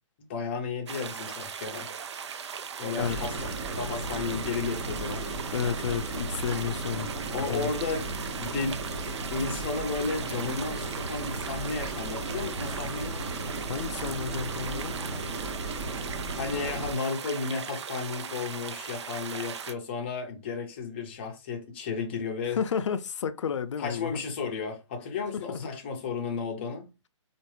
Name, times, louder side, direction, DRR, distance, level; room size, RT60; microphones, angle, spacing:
voice 1, 0.2-1.9 2.8-3.4 3.7-5.3 7.3-8.1 8.4-8.8 9.3-13.2 16.4-22.6 23.8-26.9, left 4 dB, 20° left, 0.6 m, -33 dB
sound 1, 0.9-19.7, right 7 dB, 60° right, 0.4 m, -38 dB
sound 2, 3.0-16.9, right 2 dB, 20° right, 2.2 m, -36 dB
voice 2, 5.5-7.7 13.7-15.0 22.5-24.2 25.3-25.7, left 7 dB, 65° left, 0.5 m, -32 dB
sound 3, 8.7-14.1, equal, 85° right, 1.5 m, -49 dB
4.5 x 2.5 x 3.1 m
hypercardioid pair, 170°, 16 cm